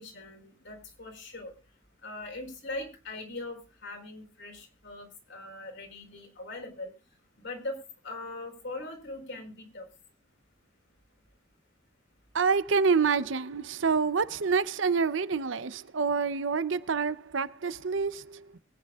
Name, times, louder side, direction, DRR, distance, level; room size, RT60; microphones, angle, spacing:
voice 1, 0.0-1.5 2.0-6.9 7.4-7.8 8.0-9.9, left 2 dB, 65° left, 4.3 m, -41 dB
voice 2, 12.3-18.6, right 5 dB, 65° right, 0.7 m, -27 dB
23.0 x 9.3 x 2.4 m
head